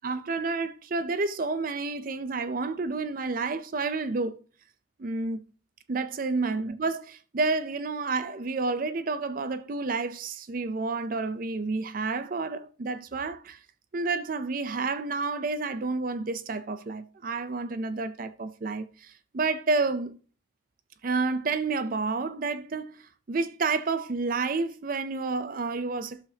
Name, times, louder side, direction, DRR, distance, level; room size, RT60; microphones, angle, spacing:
voice 1, 0.0-4.4 5.0-5.4 5.9-13.6 13.9-20.2 21.0-23.0 23.3-26.3, right 3 dB, 45° right, 0.5 m, -30 dB
12.0 x 6.5 x 2.8 m
head